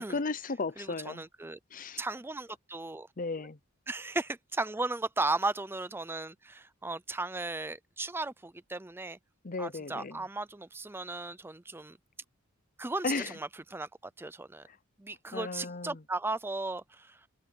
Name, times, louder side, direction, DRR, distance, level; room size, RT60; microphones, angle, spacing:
voice 1, 0.0-1.2 1.7-2.0 3.2-3.6 9.4-10.2 13.0-13.4 15.3-16.0, left 3 dB, 40° left, 0.7 m, -35 dB
voice 2, 0.8-1.6 2.0-3.1 3.9-9.2 9.6-12.0 12.8-13.1 13.3-13.9 14.2-14.6 15.0-16.8, right 2 dB, 10° right, 0.5 m, -35 dB
open air
head